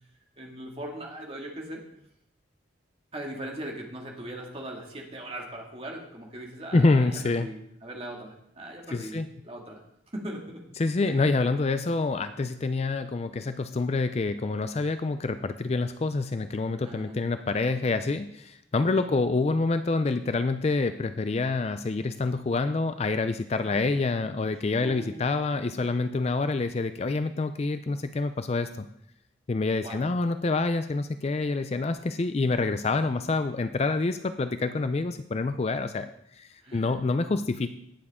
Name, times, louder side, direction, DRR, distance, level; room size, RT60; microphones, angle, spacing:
voice 1, 0.4-1.8 3.1-9.8 10.1-10.6 11.0-11.1 16.7-17.2 18.9-19.1 24.8-25.8 29.8-30.1 36.6-37.0, right 1 dB, 30° right, 0 dB, 2.0 m, -40 dB
voice 2, 6.7-7.5 8.9-9.3 10.8-28.9 29.5-37.7, left 3 dB, 30° left, 10 dB, 0.4 m, -27 dB
18.0 x 7.2 x 3.6 m, 0.76 s
head